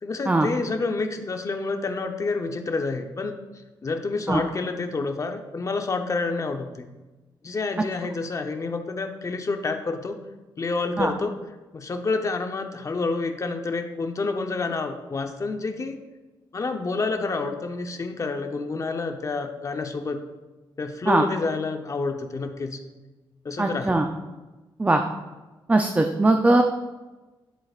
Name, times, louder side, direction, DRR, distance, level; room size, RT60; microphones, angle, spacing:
voice 1, 0.0-3.4 3.8-6.9 7.4-10.2 10.6-11.3 11.7-16.0 16.5-20.2 20.8-22.8 23.4-24.0, left 3 dB, 35° left, 6 dB, 0.8 m, -28 dB
voice 2, 23.6-24.1 24.8-25.0 25.7-26.6, right 2 dB, 15° right, 4 dB, 0.5 m, -20 dB
10.5 x 7.8 x 2.5 m, 1.2 s
cardioid pair, 100°, 9 cm